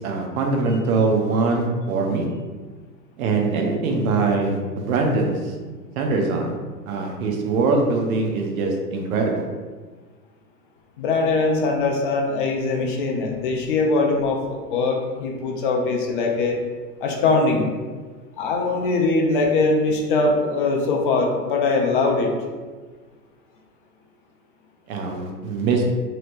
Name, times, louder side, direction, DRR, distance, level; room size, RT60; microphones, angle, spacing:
voice 1, 0.0-2.3 3.2-5.5 6.0-6.5 6.9-9.5 24.9-25.8, right 3 dB, 60° right, 2 dB, 0.7 m, -22 dB
voice 2, 11.0-16.6 17.0-17.7 18.4-22.3, left 3 dB, 35° left, 1 dB, 0.4 m, -21 dB
3.1 x 2.8 x 2.6 m, 1.4 s
hypercardioid pair, 110°, 49 cm